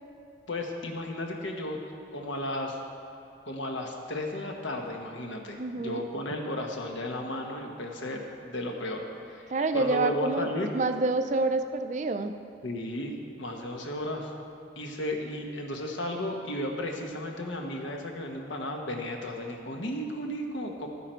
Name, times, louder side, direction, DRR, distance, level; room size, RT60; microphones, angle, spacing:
voice 1, 0.5-1.8 2.1-2.8 3.5-10.7 12.6-14.3 14.8-20.9, left 1 dB, 80° left, 2 dB, 1.3 m, -34 dB
voice 2, 5.5-6.0 9.5-10.5 10.7-12.3, right 3 dB, 40° right, 9 dB, 0.4 m, -27 dB
12.0 x 9.8 x 4.5 m, 2.6 s
head